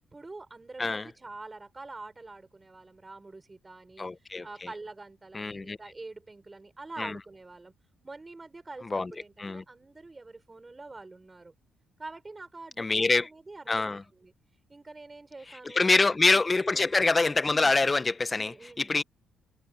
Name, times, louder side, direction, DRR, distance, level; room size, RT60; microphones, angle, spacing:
voice 1, 0.0-7.7 8.0-11.5 12.0-14.3 14.7-16.2 16.7-17.0 18.3-18.9, right 3 dB, 20° right, 6.1 m, -46 dB
voice 2, 4.0-4.5 5.3-5.8 7.0-7.2 8.9-9.1 9.4-9.6 12.8-13.3 13.7-14.0 15.6-19.0, left 3 dB, 25° left, 1.1 m, -25 dB
cardioid pair, 90°, 0 cm